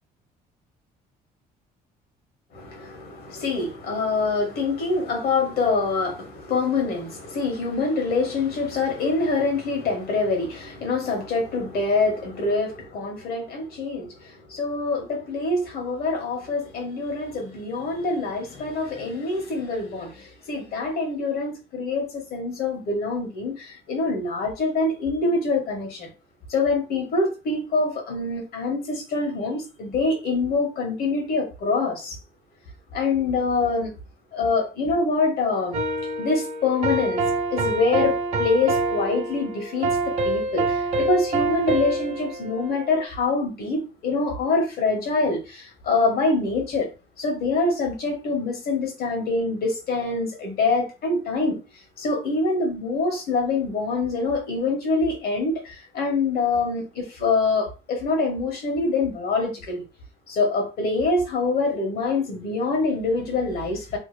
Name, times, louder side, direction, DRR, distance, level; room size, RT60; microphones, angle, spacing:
voice 1, 2.5-26.1 26.5-32.2 32.9-33.9 34.3-35.8 36.2-37.2 37.5-46.9 47.2-51.6 52.0-59.8 60.3-64.0, left 3 dB, 65° left, 1.7 m, -25 dB
sound 1, 35.7-43.0, right 2 dB, 45° right, 1.0 m, -26 dB
3.3 x 2.5 x 3.4 m
cardioid pair, 110°, 17 cm